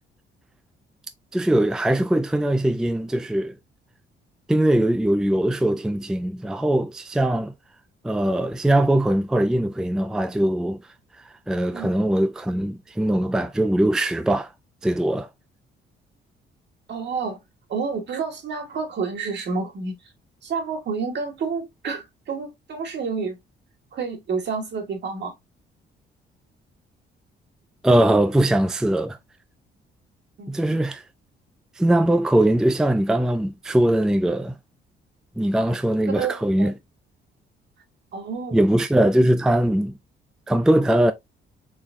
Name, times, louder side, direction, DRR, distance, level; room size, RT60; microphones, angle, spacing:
voice 1, 1.3-3.5 4.5-7.5 8.0-10.8 11.5-14.5 14.8-15.3 27.8-29.2 30.5-31.0 31.8-34.5 35.4-36.7 38.5-39.9 40.5-41.1, right 1 dB, 5° right, 0.4 m, -21 dB
voice 2, 16.9-17.4 17.7-20.0 20.4-23.4 23.9-25.3 30.4-30.5 36.1-36.7 38.1-38.6, right 5 dB, 60° right, 1.3 m, -29 dB
3.9 x 3.2 x 2.5 m
cardioid pair, 90°, 20 cm